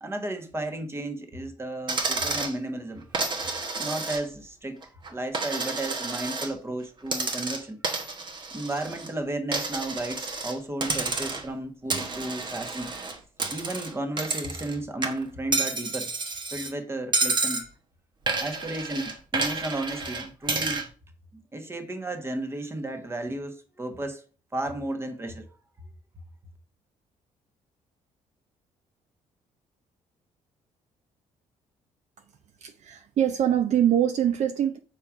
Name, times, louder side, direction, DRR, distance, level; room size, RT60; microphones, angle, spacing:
voice 1, 0.0-3.1 3.8-7.8 8.5-12.9 13.5-16.1 16.5-17.7 18.4-20.9 21.3-24.2 24.5-25.5, right 1 dB, 20° right, 1.4 m, -33 dB
Coin (dropping), 1.9-2.6 3.1-4.5 4.8-6.5 7.1-9.1 9.5-10.6 10.8-11.5 11.9-14.8 15.0-16.7 17.1-17.7 18.3-20.9, right 3 dB, 35° right, 1.2 m, -30 dB
voice 2, 32.6-34.8, right 10 dB, 60° right, 0.7 m, -24 dB
7.3 x 4.4 x 4.8 m
cardioid pair, 115°, 13 cm